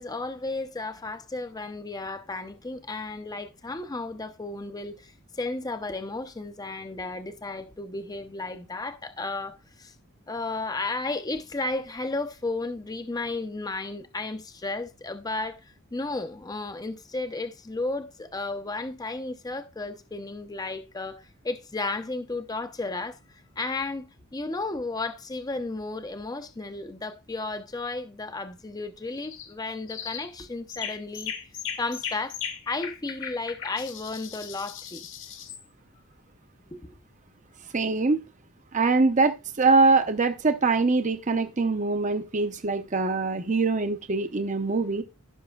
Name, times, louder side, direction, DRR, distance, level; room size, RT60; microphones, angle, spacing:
voice 1, 0.0-9.9 10.3-31.3 31.8-32.4 32.7-35.1 36.7-36.9, left 3 dB, 15° left, 0.5 m, -33 dB
sound 1, 29.2-29.5 29.9-30.3 30.7-35.6, left 8 dB, 60° left, 1.3 m, -37 dB
voice 2, 37.7-38.2 38.7-45.0, right 3 dB, 35° right, 0.7 m, -23 dB
15.5 x 5.9 x 2.3 m
head